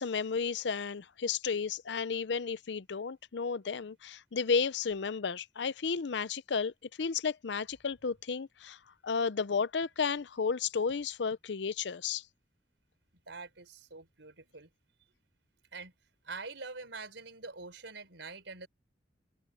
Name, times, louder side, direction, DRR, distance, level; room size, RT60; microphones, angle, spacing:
voice 1, 0.0-6.7 7.0-8.8 9.0-12.2, left 5 dB, 70° left, 0.6 m, -33 dB
voice 2, 13.3-14.7 15.7-15.9 16.2-18.7, right 4 dB, 85° right, 4.4 m, -45 dB
head